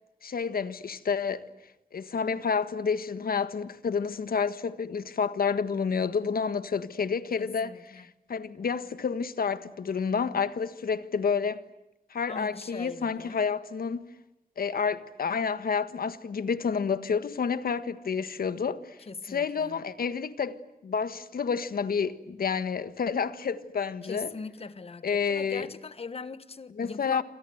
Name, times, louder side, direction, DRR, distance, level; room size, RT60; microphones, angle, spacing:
voice 1, 0.2-1.5 1.9-11.6 12.1-14.1 14.6-19.0 19.3-24.3 25.0-25.7 26.8-27.2, left 6 dB, 80° left, 1.6 m, -29 dB
voice 2, 7.4-8.1 12.3-13.4 19.1-19.8 24.0-27.2, left 4 dB, 40° left, 1.4 m, -41 dB
27.5 x 27.0 x 8.0 m
wide cardioid pair, 165°, 15 cm